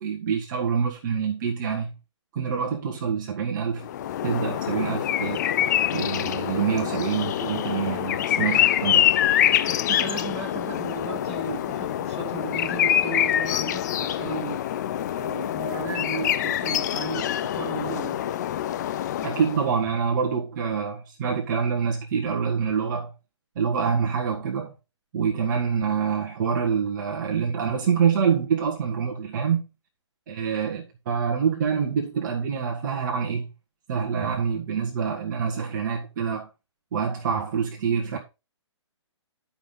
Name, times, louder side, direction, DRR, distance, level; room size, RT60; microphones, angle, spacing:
voice 1, 0.0-1.9 2.3-3.9 4.2-5.4 5.9-9.0 19.2-23.1 23.5-24.7 25.1-29.7 30.3-33.5 33.9-36.5 36.9-38.2, right 6 dB, 40° right, 1.6 m, -26 dB
sound 1, 3.8-19.7, left 11 dB, 35° left, 0.5 m, -25 dB
voice 2, 9.7-14.7 15.2-18.3, right 5 dB, 20° right, 2.1 m, -35 dB
10.0 x 5.7 x 3.9 m
figure-of-eight pair, 130°, 15 cm